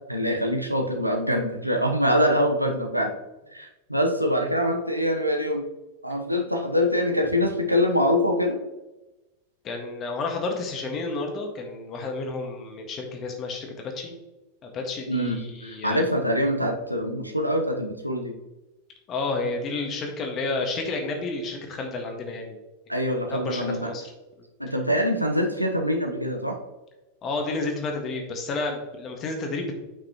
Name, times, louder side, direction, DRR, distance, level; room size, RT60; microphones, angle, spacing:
voice 1, 0.1-3.1 3.5-5.7 6.0-8.6 15.1-18.3 22.9-23.9 24.6-26.6, equal, 90° right, 3 dB, 0.9 m, -24 dB
voice 2, 9.6-14.2 14.6-16.1 19.1-22.6 23.3-24.1 27.2-29.7, left 3 dB, 30° left, 2 dB, 1.7 m, -31 dB
8.5 x 5.9 x 3.0 m, 1.0 s
figure-of-eight pair, 90°, 0 cm